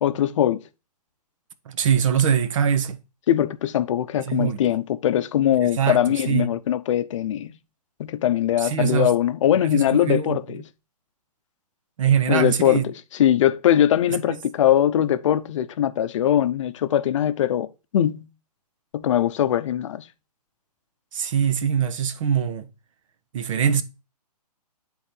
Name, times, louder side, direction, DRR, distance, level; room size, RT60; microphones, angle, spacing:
voice 1, 0.0-0.6 3.3-7.5 8.0-10.6 12.3-18.3 18.9-20.0, left 11 dB, 50° left, 0.7 m, -21 dB
voice 2, 1.7-3.0 4.3-4.6 5.8-6.0 6.3-6.5 8.6-9.1 9.6-10.4 12.0-12.8 21.1-22.7 23.3-23.8, right 8 dB, 50° right, 1.1 m, -22 dB
10.0 x 3.9 x 4.3 m
hypercardioid pair, 140°, 20 cm